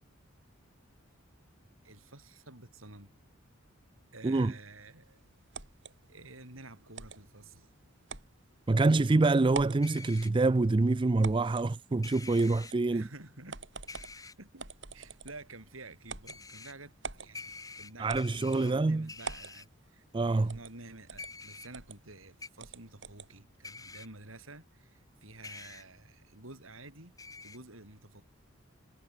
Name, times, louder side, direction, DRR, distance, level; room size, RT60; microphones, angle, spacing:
voice 1, 1.8-3.3 4.1-5.3 6.1-7.7 12.9-13.6 13.9-27.1 27.4-28.2, right 2 dB, 85° right, 8.0 m, -51 dB
sound 1, 5.5-5.9 7.0-7.2 8.1-8.3 8.8-8.9 9.5-9.9 11.2-11.7 12.4-12.8 13.5-14.2 14.6-15.5 16.1-16.4 17.0-17.3 18.1-18.7 19.2-19.6 20.5-20.8 21.1-21.3 21.7-22.0 22.6-23.3, right 4 dB, 65° right, 6.0 m, -43 dB
voice 2, 8.7-13.0 18.0-19.1 20.1-20.5, right 3 dB, 25° right, 0.4 m, -26 dB
sound 2, 9.8-10.3 12.0-12.7 13.9-14.3 16.3-16.7 17.3-18.7 19.1-19.6 21.2-21.7 22.4-22.5 23.6-24.1 25.4-25.8 27.2-27.6, left 4 dB, 15° left, 3.5 m, -46 dB
head